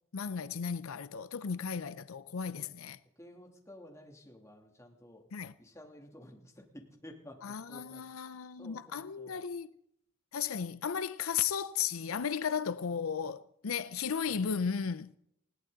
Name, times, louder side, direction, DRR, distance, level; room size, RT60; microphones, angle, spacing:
voice 1, 0.1-3.0 5.3-5.5 7.4-9.7 10.3-15.1, left 7 dB, 85° left, 0.6 m, -35 dB
voice 2, 3.2-5.2 5.6-8.3 8.6-9.4, left 1 dB, 15° left, 2.9 m, -53 dB
20.5 x 17.0 x 4.0 m
head